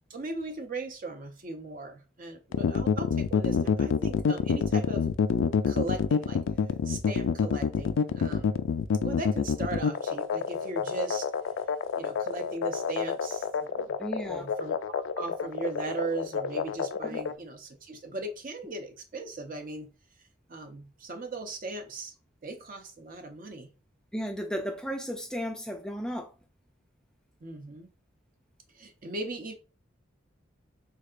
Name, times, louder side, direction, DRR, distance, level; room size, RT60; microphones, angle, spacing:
voice 1, 0.1-5.1 5.7-6.4 6.8-8.5 9.0-11.2 12.0-13.9 14.2-19.9 20.5-22.1 22.4-23.7 27.4-27.9 28.7-29.5, right 2 dB, 45° right, 0.7 m, -38 dB
sound 1, 2.5-17.3, left 6 dB, 85° left, 0.3 m, -27 dB
voice 2, 14.0-14.5 17.0-17.2 24.1-26.3, equal, 5° left, 0.4 m, -34 dB
3.6 x 3.3 x 2.5 m
head